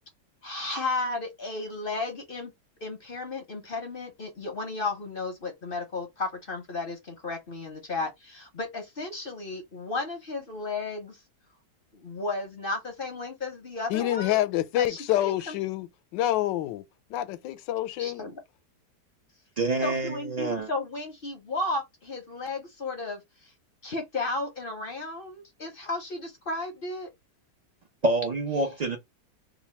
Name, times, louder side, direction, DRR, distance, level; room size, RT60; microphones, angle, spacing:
voice 1, 0.4-2.5 2.8-11.2 11.9-14.4 14.8-15.5 18.0-18.4 19.8-23.5 23.8-27.1, left 3 dB, 50° left, 0.6 m, -34 dB
voice 2, 13.9-15.9 16.1-16.8 17.1-18.3, left 14 dB, 90° left, 1.2 m, -27 dB
voice 3, 19.6-20.7 28.0-29.0, right 2 dB, 75° right, 0.3 m, -27 dB
3.0 x 2.2 x 4.2 m
omnidirectional pair, 1.9 m